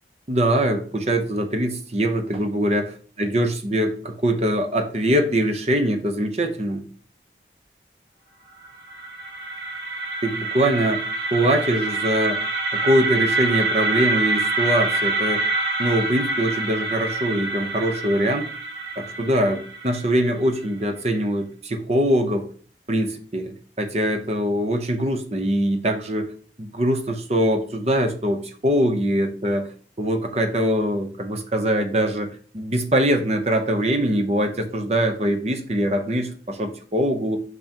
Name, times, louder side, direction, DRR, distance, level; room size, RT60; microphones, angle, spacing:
voice 1, 0.3-2.8 3.2-6.9 10.2-11.0 11.3-12.4 12.7-15.5 15.8-18.5 19.0-22.5 22.9-26.3 26.6-29.7 30.0-32.3 32.5-37.4, equal, 35° right, 6 dB, 0.8 m, -23 dB
sound 1, 8.6-20.6, right 3 dB, 75° right, 1.7 m, -26 dB
6.0 x 5.4 x 2.9 m, 0.43 s
head